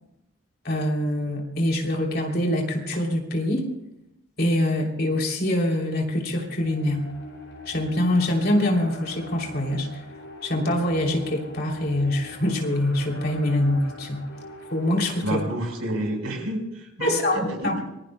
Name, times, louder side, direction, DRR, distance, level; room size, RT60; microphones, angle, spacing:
voice 1, 0.6-3.7 4.4-7.1 7.7-10.0 10.4-14.3 14.7-15.4 17.0-17.8, left 1 dB, 45° left, 1 dB, 3.0 m, -24 dB
sound 1, 6.6-15.9, left 3 dB, 65° left, 7.9 m, -42 dB
voice 2, 15.2-17.8, right 1 dB, 90° right, 2 dB, 4.7 m, -29 dB
26.0 x 21.5 x 2.2 m, 0.86 s
head